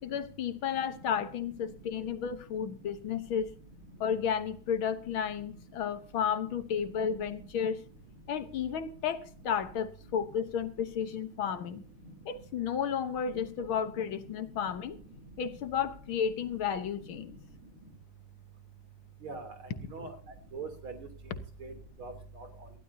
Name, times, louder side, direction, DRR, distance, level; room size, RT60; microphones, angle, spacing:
voice 1, 0.0-3.5 4.0-7.8 8.3-11.8 12.3-15.0 15.4-17.4, left 7 dB, 80° left, 2.0 m, -32 dB
voice 2, 19.2-19.5 19.9-20.1 20.5-21.4 21.6-21.7 22.0-22.5, right 4 dB, 85° right, 4.2 m, -42 dB
19.0 x 15.5 x 2.8 m
omnidirectional pair, 2.2 m